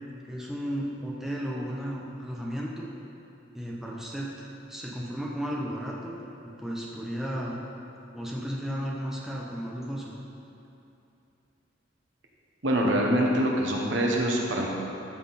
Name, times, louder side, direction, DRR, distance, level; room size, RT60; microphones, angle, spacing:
voice 1, 0.3-2.9 3.5-7.6 8.1-10.2, equal, ahead, -4 dB, 1.0 m, -34 dB
voice 2, 12.6-14.7, right 1 dB, 70° right, -1 dB, 1.4 m, -24 dB
13.5 x 6.2 x 4.3 m, 2.9 s
head